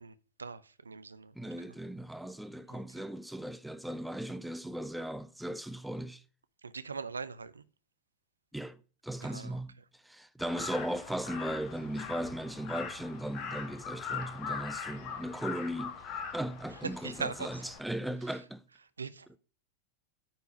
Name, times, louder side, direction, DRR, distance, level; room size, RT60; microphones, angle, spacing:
voice 1, 0.0-1.3 2.7-2.8 6.6-7.6 9.2-9.6 17.0-17.6 19.0-19.4, right 5 dB, 75° right, 0.6 m, -41 dB
voice 2, 1.4-6.2 8.5-8.8 9.0-9.7 10.0-18.6, right 1 dB, 5° right, 0.6 m, -37 dB
Crow, 10.4-17.8, left 6 dB, 40° left, 1.8 m, -41 dB
9.3 x 4.6 x 6.5 m
figure-of-eight pair, 90°, 0 cm